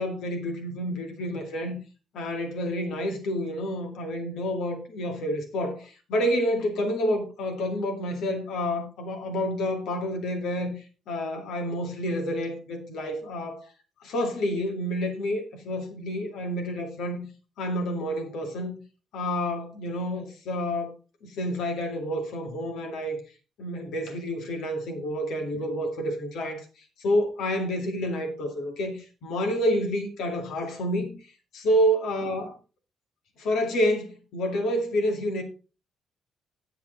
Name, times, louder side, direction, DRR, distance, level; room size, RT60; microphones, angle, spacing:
voice 1, 0.0-1.8 2.1-10.7 11.1-13.6 14.0-17.3 17.6-18.8 19.1-20.9 21.2-23.2 23.6-26.7 27.0-31.2 31.5-32.5 33.4-34.1 34.3-35.4, equal, 80° left, 2.2 m, -28 dB
8.4 x 8.1 x 3.8 m
cardioid pair, 90°, 0 cm